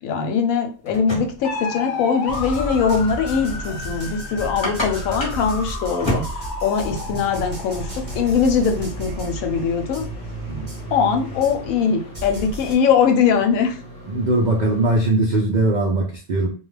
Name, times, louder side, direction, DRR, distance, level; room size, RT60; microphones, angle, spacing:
voice 1, 0.0-6.2 6.6-10.0 10.9-13.8, left 6 dB, 85° left, 1.0 m, -21 dB
sound 1, 0.6-15.1, equal, 25° left, 0.8 m, -35 dB
sound 2, 1.4-12.1, left 3 dB, 65° left, 0.7 m, -34 dB
sound 3, 2.3-11.8 12.1-12.7, right 1 dB, 30° right, 0.7 m, -33 dB
voice 2, 14.1-16.5, right 2 dB, 75° right, 0.4 m, -20 dB
2.4 x 2.3 x 3.1 m
omnidirectional pair, 1.4 m